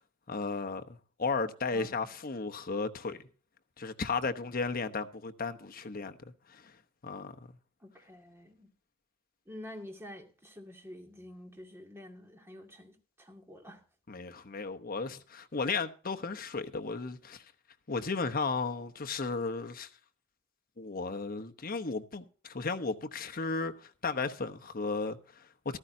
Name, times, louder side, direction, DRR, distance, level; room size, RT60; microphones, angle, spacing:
voice 1, 0.3-3.2 3.8-6.8 7.0-7.3 14.1-17.5 17.9-19.9 20.8-25.8, left 4 dB, 45° left, 1.0 m, -35 dB
voice 2, 7.8-8.7 9.5-13.8, left 1 dB, 10° right, 2.2 m, -48 dB
14.5 x 13.5 x 2.7 m
head